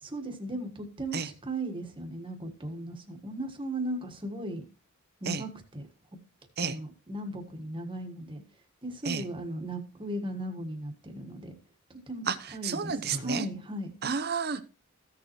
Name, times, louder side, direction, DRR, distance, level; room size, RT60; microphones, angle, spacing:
voice 1, 0.0-4.6 5.2-5.8 6.6-8.4 8.8-11.5 12.1-12.3 12.5-13.9, right 1 dB, 25° right, 4 dB, 1.5 m, -37 dB
voice 2, 12.6-13.4 14.0-14.6, right 5 dB, 45° right, 12 dB, 0.7 m, -31 dB
15.0 x 6.7 x 3.0 m, 0.35 s
head